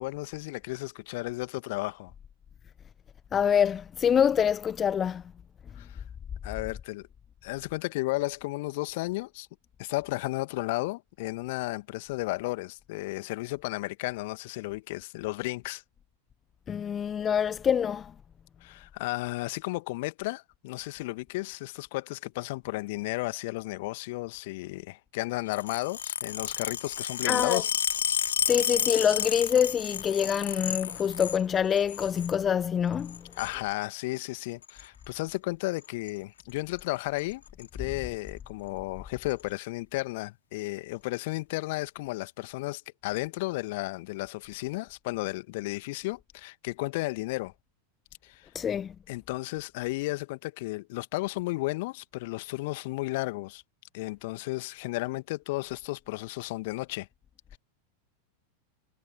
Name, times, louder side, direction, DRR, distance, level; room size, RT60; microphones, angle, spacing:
voice 1, 0.0-2.1 5.8-6.0 6.4-7.1 7.4-9.5 9.8-15.8 18.6-27.7 33.4-47.5 48.2-48.5 49.1-53.6 53.9-57.1 57.5-57.6, left 22 dB, 50° left, 2.0 m, -33 dB
voice 2, 3.3-5.2 16.7-18.1 27.3-27.6 28.4-33.3 48.5-48.9, left 8 dB, 25° left, 0.5 m, -25 dB
sound 1, 25.5-31.4 31.8-32.3 33.0-33.5 34.6-34.8 35.8-36.1 36.4-36.5 36.8-36.9 37.2-37.7 38.3-38.4 39.3-39.4, left 9 dB, 65° left, 3.2 m, -31 dB
figure-of-eight pair, 90°, 0 cm